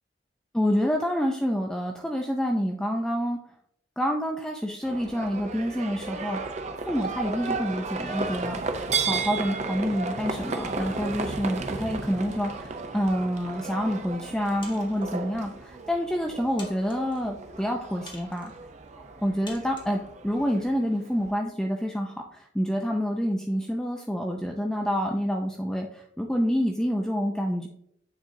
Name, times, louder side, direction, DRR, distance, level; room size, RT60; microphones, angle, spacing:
voice 1, 0.5-3.4 4.0-8.6 9.0-18.5 19.2-27.7, equal, 5° left, 1 dB, 0.4 m, -28 dB
Livestock farm animals working animals, 4.8-21.3, right 4 dB, 40° right, 0.6 m, -34 dB
sound 1, 14.6-15.2 15.9-16.0 16.6-17.2 18.1-18.6 19.5-20.0, left 3 dB, 30° left, 1.0 m, -46 dB
9.1 x 3.8 x 2.7 m, 0.73 s
head